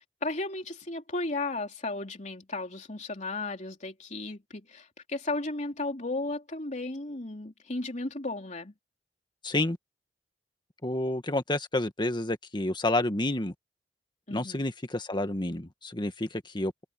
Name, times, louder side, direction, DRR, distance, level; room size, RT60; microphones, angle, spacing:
voice 1, 0.0-8.7 14.3-14.6, left 2 dB, 40° left, 3.3 m, -35 dB
voice 2, 9.4-9.8 10.8-13.5 14.3-16.7, left 1 dB, 25° left, 1.7 m, -29 dB
head